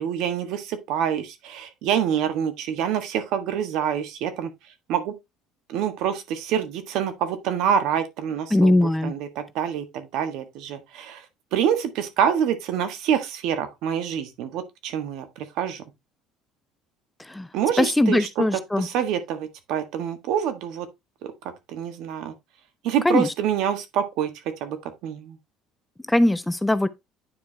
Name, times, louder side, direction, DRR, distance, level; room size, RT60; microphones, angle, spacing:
voice 1, 0.0-4.5 4.9-5.1 5.7-11.2 11.5-15.8 17.5-20.9 21.2-21.3 21.7-22.3 22.8-24.3 24.6-24.8 25.0-25.4, right 9 dB, 70° right, 1.5 m, -26 dB
voice 2, 8.5-9.1 17.3-17.5 17.8-18.9 23.0-23.3 26.1-26.9, left 1 dB, 5° left, 0.5 m, -20 dB
9.5 x 4.7 x 3.3 m
cardioid pair, 140°, 0 cm